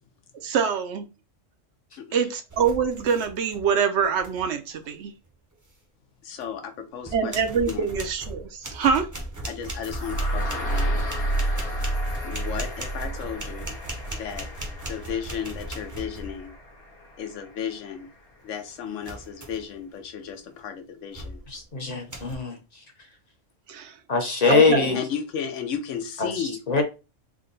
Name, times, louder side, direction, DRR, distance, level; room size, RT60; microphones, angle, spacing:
voice 1, 0.4-1.1 2.1-5.1 7.1-9.1 23.7-24.0 24.5-25.0, right 6 dB, 70° right, 0.8 m, -25 dB
sound 1, 2.5-3.7 4.0-4.5 6.4-6.5 7.0-16.6 19.0-19.7 20.2-20.5 21.1-21.6 22.1-22.4, right 1 dB, 20° right, 0.6 m, -38 dB
voice 2, 6.2-7.4 7.7-7.9 9.5-11.1 12.2-13.8 14.1-14.6 14.9-16.5 17.2-18.1 18.4-21.4 24.9-26.8, left 7 dB, 80° left, 1.0 m, -34 dB
sound 2, 9.8-17.8, right 1 dB, 55° left, 1.2 m, -30 dB
voice 3, 21.5-22.6 24.1-25.0 26.2-26.3 26.7-26.8, left 4 dB, 40° left, 0.8 m, -22 dB
3.6 x 2.2 x 3.9 m
omnidirectional pair, 1.3 m